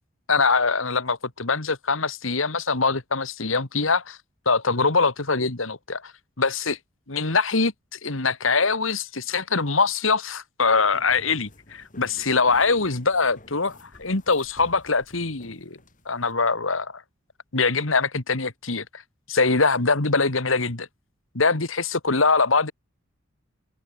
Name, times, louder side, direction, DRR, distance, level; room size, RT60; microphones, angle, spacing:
voice 1, 0.3-4.2 4.5-6.1 6.4-6.8 7.1-15.8 16.1-17.0 17.5-19.0 19.3-20.9 21.3-22.7, left 4 dB, 75° left, 2.2 m, -23 dB
sound 1, 10.9-16.3, left 1 dB, 40° left, 4.6 m, -51 dB
open air
head